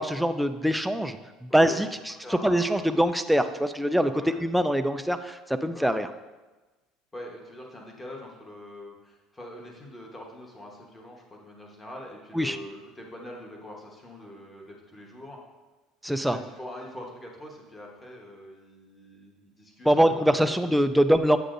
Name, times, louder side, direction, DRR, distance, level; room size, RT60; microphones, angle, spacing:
voice 1, 0.0-4.1 4.4-6.1 12.3-12.6 16.0-16.4 19.8-21.4, equal, ahead, 9 dB, 0.3 m, -24 dB
voice 2, 1.5-1.8 2.2-3.0 4.1-4.4 5.7-6.0 7.1-15.4 16.3-20.8, equal, 15° left, 0 dB, 1.1 m, -43 dB
8.2 x 7.8 x 2.5 m, 1.2 s
cardioid pair, 160°, 0 cm